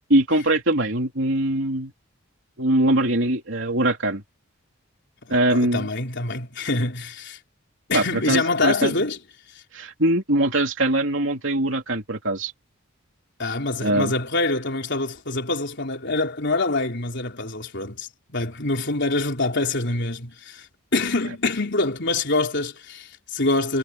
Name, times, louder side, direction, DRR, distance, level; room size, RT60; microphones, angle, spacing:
voice 1, 0.1-1.9 2.6-4.2 5.3-5.9 7.9-9.0 9.7-12.5 13.8-14.1, right 1 dB, 60° right, 3.5 m, -22 dB
voice 2, 5.3-7.4 7.9-9.2 13.4-20.7 20.9-23.8, left 2 dB, 55° left, 4.0 m, -25 dB
head